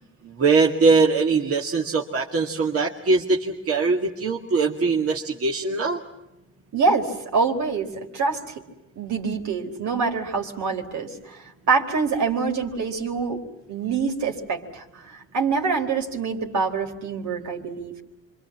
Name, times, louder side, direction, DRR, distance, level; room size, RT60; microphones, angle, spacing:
voice 1, 0.2-6.0, right 4 dB, 50° right, -1 dB, 2.3 m, -21 dB
voice 2, 6.7-8.6 9.0-13.4 13.7-17.9, right 4 dB, 70° right, 2 dB, 4.2 m, -25 dB
27.0 x 24.5 x 7.4 m, 0.92 s
cardioid pair, 90°, 30 cm